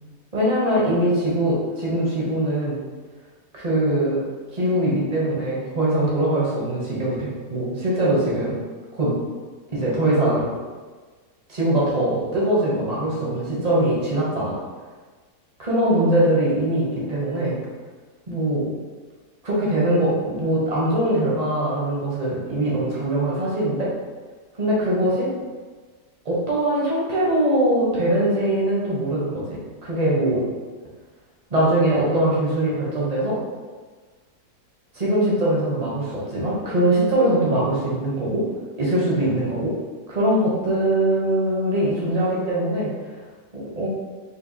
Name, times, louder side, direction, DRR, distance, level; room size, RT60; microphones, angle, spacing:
voice 1, 0.3-2.8 3.5-4.2 4.5-8.5 9.0-9.1 9.7-10.5 11.5-14.5 15.6-17.6 18.3-18.7 19.4-23.9 24.6-25.3 26.2-30.4 31.5-33.4 34.9-38.4 38.8-39.7 40.1-42.9 43.8-43.9, right 1 dB, 35° right, -6 dB, 0.6 m, -22 dB
4.4 x 2.7 x 2.6 m, 1.4 s
omnidirectional pair, 1.8 m